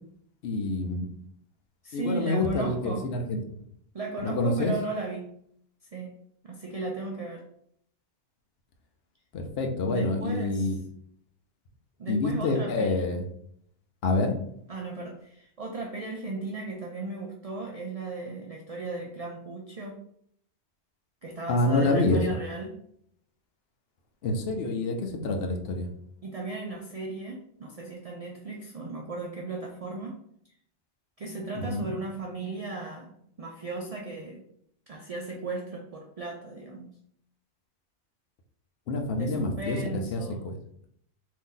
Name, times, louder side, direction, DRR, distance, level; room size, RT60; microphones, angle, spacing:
voice 1, 0.4-1.1 1.9-3.4 4.2-4.7 9.3-10.8 12.1-13.2 14.0-14.4 21.5-22.2 24.2-25.9 31.5-31.9 38.9-40.6, left 2 dB, 65° left, 4 dB, 0.8 m, -27 dB
voice 2, 1.8-3.1 3.9-5.3 5.9-7.5 9.9-10.7 12.0-13.1 14.7-20.0 21.2-22.8 26.2-30.2 31.2-34.4 34.9-36.9 39.1-40.4, right 3 dB, 60° right, 0 dB, 0.4 m, -36 dB
2.7 x 2.6 x 3.7 m, 0.68 s
omnidirectional pair, 1.1 m